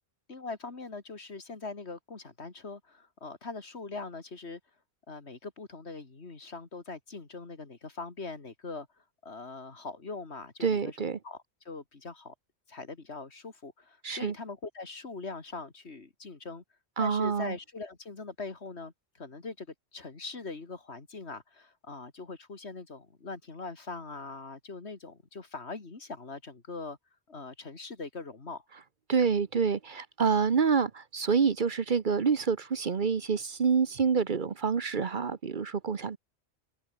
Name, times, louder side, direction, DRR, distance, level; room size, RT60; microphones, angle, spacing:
voice 1, 0.3-4.6 5.1-8.9 9.2-12.3 12.7-16.6 17.0-19.7 19.9-27.0 27.3-28.6, left 3 dB, 75° left, 2.8 m, -42 dB
voice 2, 10.6-11.2 14.0-14.3 17.0-17.5 29.1-36.2, right 6 dB, 50° right, 1.0 m, -27 dB
omnidirectional pair, 1.1 m